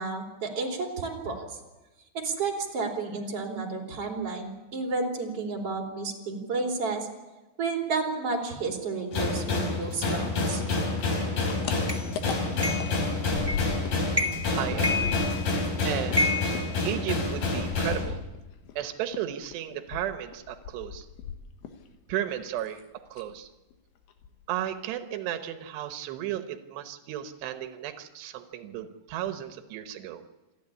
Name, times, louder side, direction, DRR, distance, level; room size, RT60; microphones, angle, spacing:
voice 1, 0.0-1.5 2.2-7.1 7.6-10.6, right 3 dB, 40° right, 1 dB, 3.8 m, -31 dB
sound 1, 9.1-18.0, left 3 dB, 60° left, 5.4 m, -28 dB
sound 2, 11.0-14.0 14.3-18.8 19.1-21.9 22.1-22.8 23.1-23.4 23.7-23.8 24.1-24.6, left 7 dB, 75° left, 3.4 m, -38 dB
sound 3, 11.9-12.0 12.6-13.0 13.5-13.8 14.1-14.5 14.8-15.6 16.2-17.4, left 2 dB, 10° right, 0.8 m, -29 dB
voice 2, 14.6-15.3 15.8-16.3 16.8-18.2 18.8-21.1 22.1-22.8 23.1-23.5 24.5-30.2, right 11 dB, 90° right, 8 dB, 3.2 m, -34 dB
27.5 x 11.5 x 9.8 m, 1.1 s
omnidirectional pair, 4.7 m